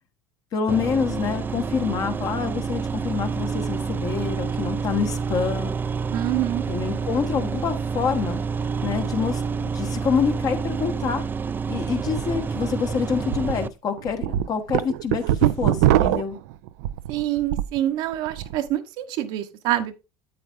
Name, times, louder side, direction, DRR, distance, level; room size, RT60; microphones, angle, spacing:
voice 1, 0.5-5.8 6.7-8.4 8.8-11.2 11.7-16.4, left 6 dB, 45° left, 1.5 m, -26 dB
sound 1, 0.7-13.7, right 5 dB, 25° right, 0.4 m, -28 dB
voice 2, 6.1-6.6 17.1-20.0, right 13 dB, 70° right, 1.0 m, -26 dB
sound 2, 12.1-12.2 12.6-12.7 13.3-13.5 14.0-17.8 18.1-18.6, right 13 dB, 85° right, 0.4 m, -22 dB
8.4 x 8.3 x 2.6 m
supercardioid pair, 105°, 8 cm